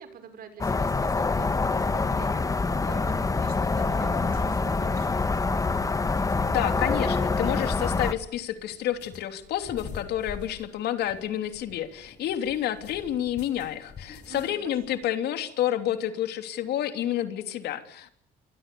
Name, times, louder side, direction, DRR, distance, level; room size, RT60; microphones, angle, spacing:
voice 1, 0.0-5.4 14.2-14.6 14.9-15.0, right 6 dB, 60° right, 9 dB, 6.2 m, -46 dB
sound 1, 0.6-8.1, left 3 dB, 20° left, 1.7 m, -25 dB
voice 2, 6.4-18.1, left 11 dB, 75° left, 8 dB, 3.2 m, -29 dB
sound 2, 6.6-15.1, left 6 dB, 45° left, 7.0 m, -47 dB
28.0 x 24.0 x 7.0 m, 0.64 s
cardioid pair, 110°, 17 cm